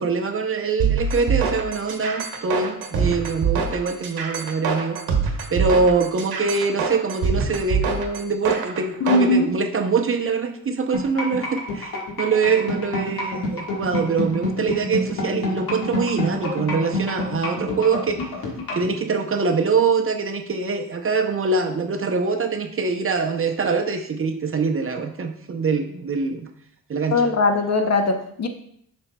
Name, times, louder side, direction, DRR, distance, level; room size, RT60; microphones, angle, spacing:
voice 1, 0.0-5.0 5.5-18.2 18.7-26.5 26.9-27.3, right 4 dB, 35° right, 4 dB, 0.7 m, -24 dB
sound 1, 0.8-9.3, right 6 dB, 80° right, 1.1 m, -24 dB
voice 2, 9.0-9.5 27.1-28.5, left 3 dB, 45° left, 6 dB, 0.8 m, -20 dB
sound 2, 10.9-18.9, left 3 dB, 70° left, 1.7 m, -27 dB
7.0 x 6.1 x 2.3 m, 0.67 s
cardioid pair, 90°, 37 cm